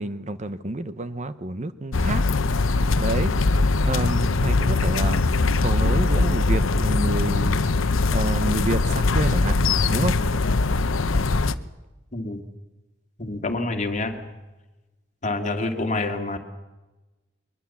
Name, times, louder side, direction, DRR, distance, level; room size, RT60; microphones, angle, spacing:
voice 1, 0.0-2.2 3.0-3.3 3.6-5.2 5.6-9.5 9.9-10.1, right 2 dB, 35° right, 12 dB, 0.9 m, -29 dB
sound 1, 1.9-11.5, left 3 dB, 90° left, 0.8 m, -21 dB
voice 2, 13.2-14.3 15.2-16.4, left 2 dB, 40° left, 4 dB, 2.4 m, -27 dB
22.5 x 21.0 x 7.2 m, 1.1 s
head